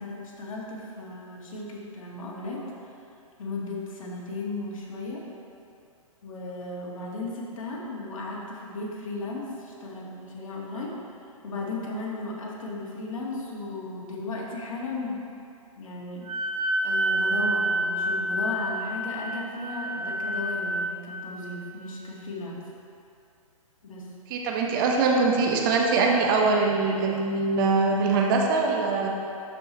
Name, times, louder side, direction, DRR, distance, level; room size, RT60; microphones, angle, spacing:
voice 1, 0.0-2.9 3.4-5.2 6.2-11.0 11.4-15.3 15.7-16.3 16.8-22.6 23.8-24.1, left 2 dB, 65° left, -3 dB, 1.7 m, -35 dB
Wind instrument woodwind instrument, 16.2-20.9, right 1 dB, 75° right, 1.5 m, -28 dB
voice 2, 24.3-29.1, right 4 dB, 35° right, 0 dB, 0.8 m, -23 dB
12.0 x 4.7 x 3.0 m, 2.5 s
hypercardioid pair, 135°, 18 cm